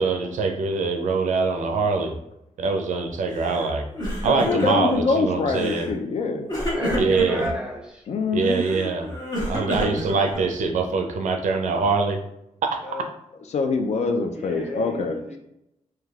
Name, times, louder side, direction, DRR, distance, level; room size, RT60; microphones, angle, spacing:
voice 1, 0.0-2.1 2.6-3.9 4.2-5.9 6.9-7.5 8.3-9.1 9.5-12.2 12.6-12.8, right 4 dB, 85° right, 5 dB, 0.4 m, -23 dB
Crying sobbing, 3.3-3.7 3.9-5.0 5.5-5.9 6.5-7.5 8.4-10.7, equal, 35° left, 1.0 m, -29 dB
voice 2, 4.5-6.5 8.1-8.6 13.5-15.4, left 4 dB, 65° left, 5 dB, 0.4 m, -24 dB
voice 3, 6.6-8.0 12.8-13.1 14.3-15.4, equal, 5° right, -1 dB, 0.5 m, -32 dB
3.2 x 2.3 x 2.3 m, 0.82 s
wide cardioid pair, 125°, 12 cm